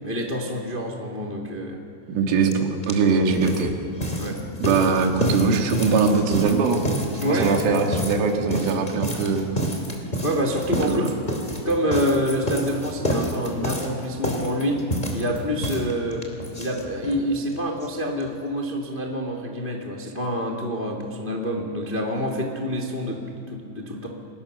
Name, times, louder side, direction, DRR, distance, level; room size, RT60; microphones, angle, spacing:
voice 1, 0.0-1.8 4.2-4.4 7.2-7.5 10.2-11.0 11.6-14.8 15.1-16.3 16.6-24.1, equal, 80° left, 1 dB, 0.4 m, -27 dB
voice 2, 2.1-3.7 4.6-6.9 7.2-9.5 10.7-11.1, right 5 dB, 90° right, 3 dB, 4.6 m, -21 dB
sound 1, 2.5-2.6 2.8-17.2 17.5-17.6 17.8-17.9 18.2-18.3, equal, 15° left, 2.1 m, -29 dB
30.0 x 23.0 x 6.7 m, 2.5 s
omnidirectional pair, 5.5 m